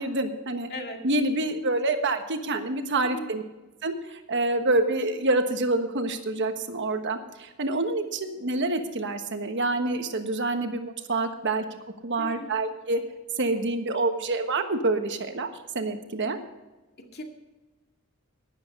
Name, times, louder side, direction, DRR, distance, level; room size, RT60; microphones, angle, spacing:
voice 1, 0.0-0.7 1.0-3.4 3.8-11.6 12.0-13.0 13.4-15.5 15.7-16.4, right 2 dB, 55° right, 7 dB, 1.3 m, -27 dB
voice 2, 0.7-1.0 3.0-3.3 12.2-12.5 17.0-17.2, left 1 dB, 50° left, 2 dB, 2.2 m, -37 dB
12.0 x 10.5 x 5.3 m, 1.1 s
head